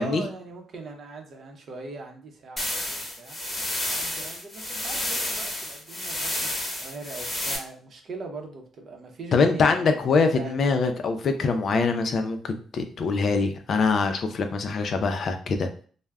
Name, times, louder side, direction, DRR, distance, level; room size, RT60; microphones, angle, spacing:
voice 1, 0.0-3.4 3.9-9.9 10.4-10.6, right 3 dB, 55° right, 3 dB, 0.6 m, -40 dB
sound 1, 2.6-7.6, left 1 dB, 15° left, 0.9 m, -30 dB
voice 2, 9.3-15.7, left 4 dB, 55° left, 6 dB, 0.4 m, -24 dB
2.2 x 2.0 x 3.4 m, 0.43 s
cardioid pair, 90°, 0 cm